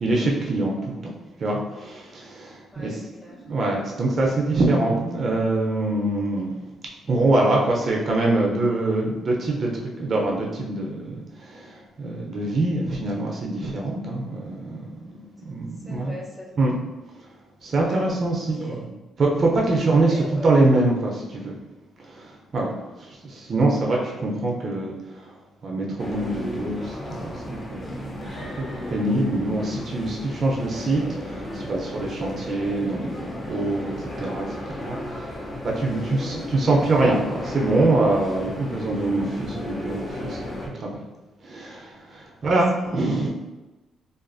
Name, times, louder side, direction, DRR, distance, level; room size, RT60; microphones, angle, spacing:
voice 1, 0.0-2.9 3.4-6.5 7.1-14.8 15.4-16.1 16.6-16.8 17.6-18.9 19.2-21.6 22.0-40.4 40.7-40.9 41.4-43.3, right 2 dB, 50° right, -2 dB, 0.5 m, -24 dB
voice 2, 2.7-3.6 15.5-16.7 17.8-18.8 20.1-20.5 24.0-24.2 42.4-42.6 42.9-43.1, left 1 dB, 10° left, -4 dB, 0.8 m, -41 dB
sound 1, 26.0-40.7, left 1 dB, 40° left, 0.6 m, -34 dB
2.5 x 2.4 x 2.5 m, 1.1 s
cardioid pair, 90°, 0 cm